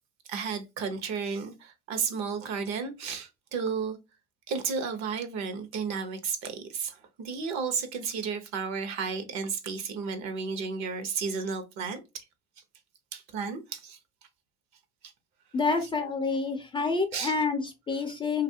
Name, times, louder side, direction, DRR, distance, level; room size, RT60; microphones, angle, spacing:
voice 1, 0.2-4.0 4.5-12.2 13.1-14.0 17.1-17.3, right 5 dB, 60° right, 0.8 m, -33 dB
voice 2, 15.5-18.4, left 4 dB, 15° left, 0.3 m, -28 dB
2.7 x 2.4 x 2.6 m
cardioid pair, 125°, 30 cm